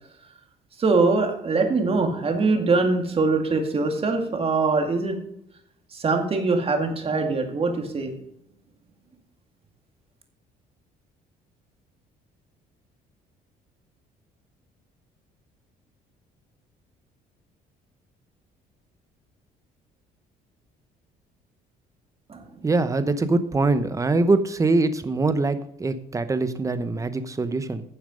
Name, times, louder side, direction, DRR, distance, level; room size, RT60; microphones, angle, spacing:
voice 1, 0.8-5.2 5.9-8.2 22.3-22.4, right 3 dB, 35° right, 4 dB, 2.0 m, -23 dB
voice 2, 22.6-27.8, right 3 dB, 20° right, 11 dB, 0.9 m, -23 dB
10.5 x 7.1 x 5.2 m, 0.77 s
cardioid pair, 110°, 17 cm